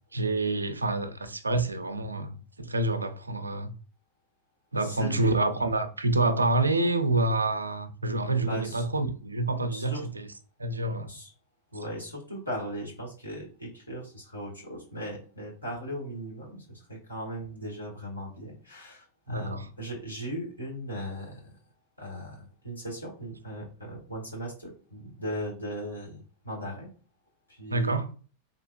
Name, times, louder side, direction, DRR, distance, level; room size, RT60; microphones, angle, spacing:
voice 1, 0.1-3.7 4.7-10.3 10.6-11.1 19.3-19.7 27.7-28.1, right 2 dB, 80° right, 0.4 m, -27 dB
voice 2, 4.7-5.3 8.4-8.8 9.7-10.1 11.1-11.3 11.7-21.5 22.0-26.9 27.5-27.9, equal, 85° left, 1.5 m, -38 dB
3.8 x 2.8 x 2.3 m
figure-of-eight pair, 90°, 0 cm